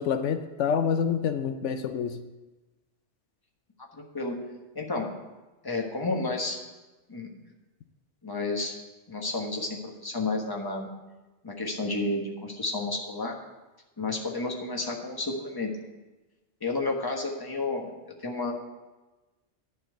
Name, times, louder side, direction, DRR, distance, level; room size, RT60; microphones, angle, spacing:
voice 1, 0.0-2.2, left 7 dB, 85° left, 9 dB, 1.0 m, -27 dB
voice 2, 3.9-4.4 4.7-5.1 5.6-6.6 7.1-7.4 8.2-8.8 9.1-10.9 11.4-13.4 14.0-15.7 16.6-17.9 18.2-18.5, left 2 dB, 20° left, 0 dB, 1.3 m, -31 dB
11.0 x 4.7 x 7.7 m, 1.1 s
omnidirectional pair, 1.2 m